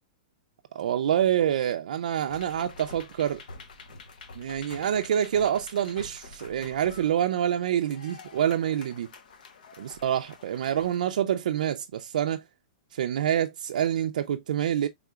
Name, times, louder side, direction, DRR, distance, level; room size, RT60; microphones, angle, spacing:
voice 1, 0.7-3.4 4.4-9.1 9.8-12.4 12.9-14.9, right 10 dB, 75° right, 0.4 m, -27 dB
sound 1, 2.3-11.0, left 3 dB, 85° left, 0.9 m, -47 dB
4.8 x 3.5 x 2.3 m
supercardioid pair, 175°, 4 cm